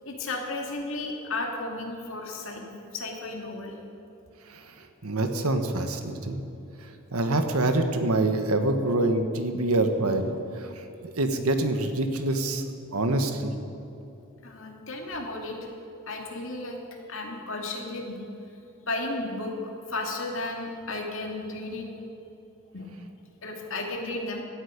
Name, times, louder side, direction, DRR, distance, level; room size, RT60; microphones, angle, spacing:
voice 1, 0.0-2.7 2.9-3.7 14.4-15.6 16.1-16.8 17.1-18.2 18.9-19.5 19.9-21.9 22.7-22.9 23.4-24.4, left 2 dB, 60° left, 1 dB, 2.5 m, -33 dB
voice 2, 4.5-6.4 7.1-10.8 11.2-12.6 12.9-13.5, right 2 dB, 80° right, 7 dB, 1.4 m, -26 dB
17.0 x 12.5 x 5.2 m, 3.0 s
head